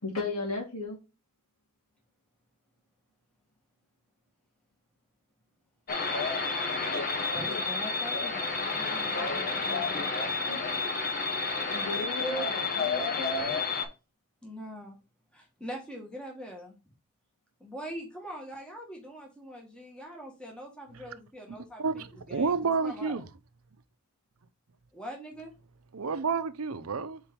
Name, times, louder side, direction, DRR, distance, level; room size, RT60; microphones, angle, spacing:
voice 1, 0.0-1.0 11.7-13.5, left 3 dB, 85° left, 2.5 m, -35 dB
sound 1, 5.9-13.8, left 3 dB, 40° left, 1.2 m, -30 dB
voice 2, 7.3-10.5 14.4-15.0 15.3-16.8 17.6-22.5 22.8-23.2 24.9-25.5, equal, 5° left, 1.4 m, -43 dB
voice 3, 21.8-23.3 25.9-27.2, right 5 dB, 70° right, 0.6 m, -30 dB
4.5 x 4.5 x 5.2 m
head